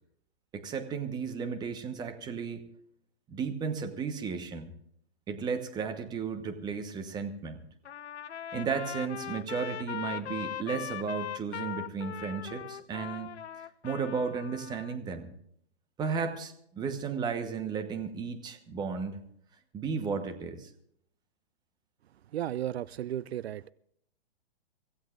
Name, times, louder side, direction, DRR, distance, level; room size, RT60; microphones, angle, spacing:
voice 1, 0.5-2.6 3.3-4.7 5.3-7.6 8.5-13.3 13.8-15.3 16.0-19.2 19.7-20.7, right 5 dB, 10° right, 1.1 m, -34 dB
Trumpet, 7.8-15.0, left 10 dB, 90° left, 0.7 m, -40 dB
voice 2, 22.3-23.7, right 11 dB, 70° right, 0.5 m, -34 dB
24.5 x 16.0 x 2.5 m
hypercardioid pair, 145°, 33 cm